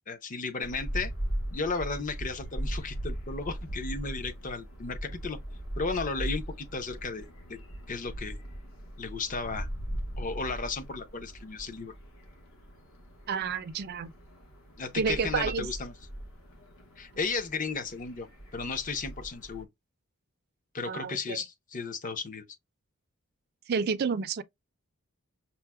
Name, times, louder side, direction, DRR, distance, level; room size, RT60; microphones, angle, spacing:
voice 1, 0.1-1.1 1.5-5.4 5.8-7.3 7.9-8.4 9.0-9.7 10.2-11.9 14.8-15.9 17.0-18.3 18.5-19.7 20.7-22.5, left 4 dB, 35° left, 0.6 m, -34 dB
sound 1, 0.6-19.6, right 1 dB, 60° left, 1.0 m, -39 dB
voice 2, 13.3-14.1 15.0-15.7 20.9-21.4 23.7-24.4, right 5 dB, 45° right, 0.4 m, -30 dB
5.5 x 2.0 x 2.2 m
head